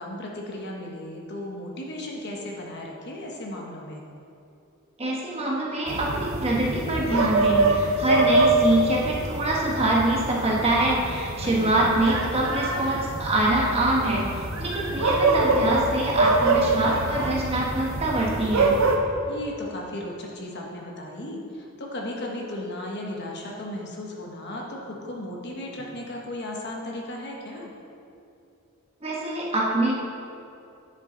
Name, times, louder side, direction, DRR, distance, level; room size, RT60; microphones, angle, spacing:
voice 1, 0.0-4.1 11.4-12.0 19.3-27.7, left 1 dB, 55° left, -1 dB, 1.3 m, -35 dB
voice 2, 5.0-14.2 14.6-18.7 29.0-29.9, right 2 dB, 30° right, -4 dB, 1.5 m, -24 dB
sound 1, 5.9-19.0, right 2 dB, 75° right, 0.9 m, -25 dB
9.7 x 7.2 x 3.9 m, 2.6 s
head